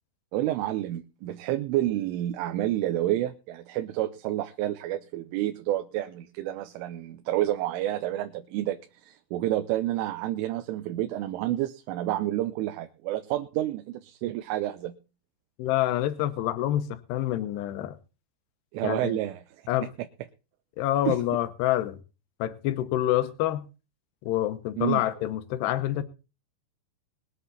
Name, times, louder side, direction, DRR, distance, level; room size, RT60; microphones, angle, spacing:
voice 1, 0.3-14.9 18.7-19.4 21.1-21.2 24.8-25.0, right 14 dB, 85° right, 3.4 m, -29 dB
voice 2, 15.6-18.0 18.8-19.2 19.7-19.9 20.8-22.0 22.4-23.6 24.2-26.0, left 13 dB, 75° left, 2.7 m, -27 dB
21.5 x 8.1 x 4.1 m
omnidirectional pair, 5.5 m